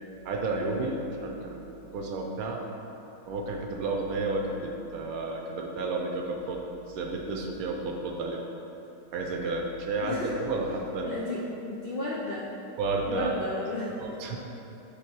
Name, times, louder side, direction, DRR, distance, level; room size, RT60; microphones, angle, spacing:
voice 1, 0.2-2.6 3.3-6.6 6.9-8.4 9.1-11.1 12.8-13.5 14.0-14.4, right 3 dB, 70° right, 1 dB, 1.0 m, -31 dB
voice 2, 11.0-12.5 13.1-14.0, left 2 dB, 60° left, -6 dB, 0.5 m, -33 dB
6.0 x 4.0 x 4.6 m, 2.9 s
omnidirectional pair, 1.8 m